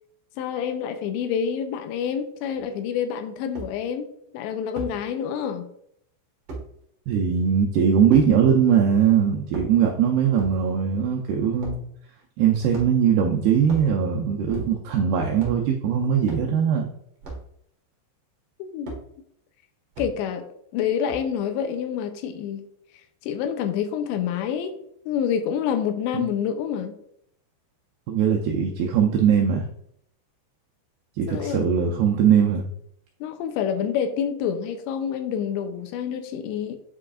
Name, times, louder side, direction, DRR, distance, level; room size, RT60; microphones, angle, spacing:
voice 1, 0.4-4.1 4.3-5.7 18.6-18.9 20.0-20.5 20.7-22.6 23.2-24.8 25.1-26.9 31.3-32.0 33.2-36.8, left 8 dB, 85° left, 2.8 m, -27 dB
sound 1, 2.5-2.6 3.5-3.7 4.8-5.0 6.5-6.7 8.1-8.3 9.4-9.9 10.3-10.6 11.6-11.8 12.7-13.1 13.6-13.9 14.5-14.9 15.4-15.6 16.2-16.5 17.2-17.5 18.9-19.0 19.9-20.1 21.1-21.4, right 2 dB, 60° right, 1.6 m, -36 dB
voice 2, 7.1-11.8 12.4-16.9 26.1-26.2 28.1-29.6 31.2-32.6, right 7 dB, 85° right, 2.2 m, -20 dB
8.9 x 4.8 x 2.5 m
omnidirectional pair, 5.3 m